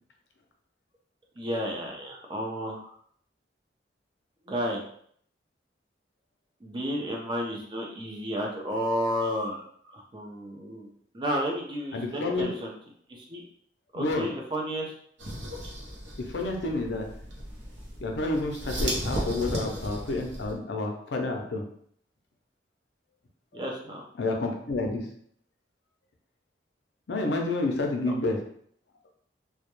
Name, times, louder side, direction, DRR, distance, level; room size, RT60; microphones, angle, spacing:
voice 1, 1.4-2.8 4.5-4.8 6.6-10.9 11.1-12.7 13.1-13.4 13.9-14.9 23.5-24.0, equal, 25° right, -1 dB, 0.5 m, -32 dB
voice 2, 11.9-12.5 13.9-14.3 16.3-17.1 18.0-21.6 24.2-25.0 27.1-28.4, left 2 dB, 75° left, 2 dB, 0.5 m, -29 dB
sound 1, 15.2-20.5, equal, 85° right, 0.7 m, -35 dB
2.2 x 2.1 x 2.9 m, 0.62 s
head